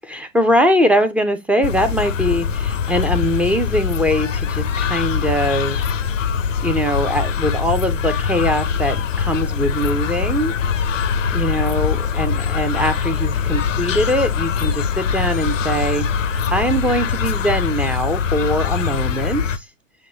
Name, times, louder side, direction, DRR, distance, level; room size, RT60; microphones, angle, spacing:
voice 1, 0.0-5.8 6.6-10.5 11.0-11.1 11.3-19.7, equal, 5° right, 0.3 m, -21 dB
sound 1, 1.6-19.6, left 6 dB, 85° left, 0.6 m, -22 dB
7.0 x 2.6 x 2.7 m
hypercardioid pair, 105°, 37 cm